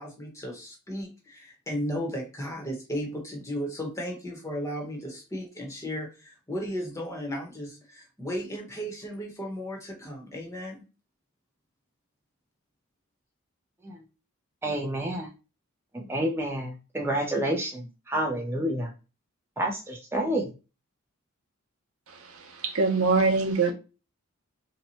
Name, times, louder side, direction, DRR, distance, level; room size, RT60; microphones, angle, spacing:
voice 1, 0.0-10.8, equal, 15° left, 0.9 m, -35 dB
voice 2, 14.6-15.3 15.9-18.9 19.6-20.5, right 1 dB, 10° right, 0.4 m, -29 dB
voice 3, 22.6-23.7, right 4 dB, 75° right, 0.7 m, -23 dB
2.8 x 2.2 x 4.0 m
head